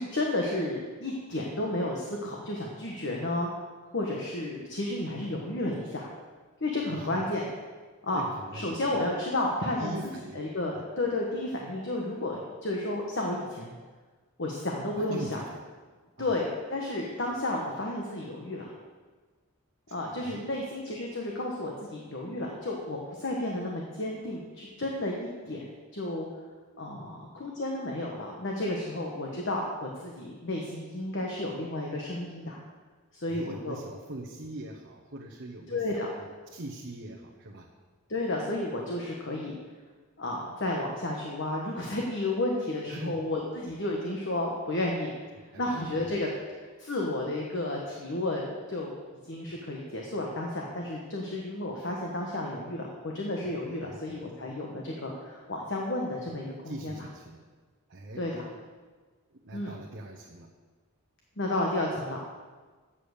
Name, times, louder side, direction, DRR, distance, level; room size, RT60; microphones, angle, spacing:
voice 1, 0.0-3.5 3.9-6.1 6.6-7.4 8.0-8.2 8.5-13.7 14.4-15.4 16.2-18.7 19.9-26.3 26.8-32.6 33.1-33.8 35.7-36.1 38.1-39.6 40.2-45.1 45.6-46.3 46.6-48.9 49.2-57.0 58.2-58.4 59.5-59.7 61.4-62.2, left 1 dB, 60° left, -1 dB, 1.2 m, -32 dB
voice 2, 6.9-7.3 8.1-9.1 9.8-10.4 10.7-10.9 14.9-15.6 16.2-16.4 20.2-20.4 33.3-37.7 42.9-43.2 45.3-46.2 53.8-54.0 56.6-57.4 57.9-58.3 59.4-60.5, right 1 dB, 55° right, -2 dB, 1.0 m, -42 dB
8.6 x 7.2 x 6.5 m, 1.4 s
head